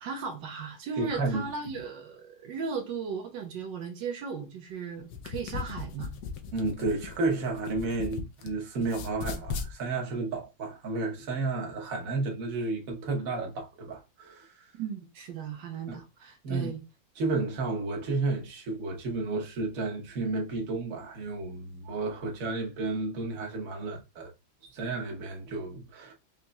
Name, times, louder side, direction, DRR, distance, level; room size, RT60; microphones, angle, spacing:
voice 1, 0.0-6.1 14.7-16.8, right 5 dB, 80° right, 1.4 m, -36 dB
voice 2, 1.0-1.5 6.5-14.7 15.9-16.0 16.4-16.8 17.2-24.3 24.6-26.1, right 3 dB, 50° right, 1.3 m, -32 dB
sound 1, 5.0-8.5 8.8-9.7, left 5 dB, 70° left, 1.2 m, -37 dB
5.2 x 2.9 x 2.2 m
omnidirectional pair, 2.0 m